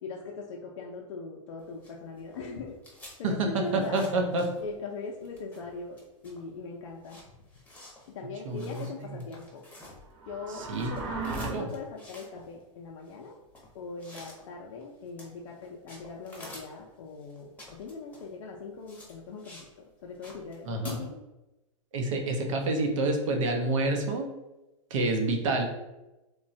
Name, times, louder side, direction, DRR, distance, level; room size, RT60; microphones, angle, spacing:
voice 1, 0.0-2.8 3.2-4.1 4.6-7.2 8.1-9.6 10.3-10.6 10.9-13.3 13.7-19.6 20.0-21.2, left 4 dB, 65° left, -1 dB, 0.4 m, -40 dB
sound 1, 1.6-4.9 5.2-10.3 10.6-19.7 20.0-20.9, left 1 dB, 10° left, 0.8 m, -50 dB
voice 2, 3.2-4.5 8.4-9.2 10.5-10.9 11.3-11.7 20.7-21.0 21.9-24.3 24.9-25.7, right 2 dB, 70° right, 3 dB, 0.6 m, -28 dB
sound 2, 10.1-11.5, right 4 dB, 30° right, 0.5 m, -36 dB
3.1 x 2.1 x 2.6 m, 1.0 s
hypercardioid pair, 120°, 17 cm